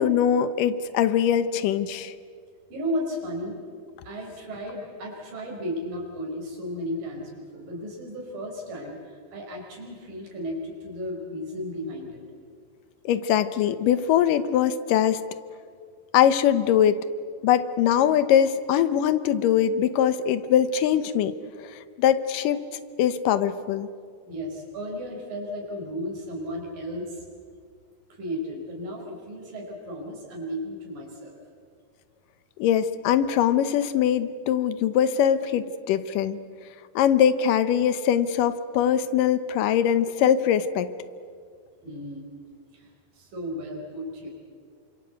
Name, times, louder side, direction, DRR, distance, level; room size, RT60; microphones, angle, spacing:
voice 1, 0.0-2.1 13.1-15.2 16.1-17.0 17.4-21.3 22.0-22.6 23.0-23.9 32.6-36.4 37.0-40.9, left 9 dB, 80° left, 13 dB, 2.5 m, -22 dB
voice 2, 2.7-3.6 4.0-12.2 24.2-27.3 28.1-31.4 41.8-42.3 42.7-42.9 43.1-44.3, equal, 80° right, 0 dB, 6.7 m, -34 dB
28.0 x 25.5 x 8.2 m, 2.1 s
omnidirectional pair, 3.9 m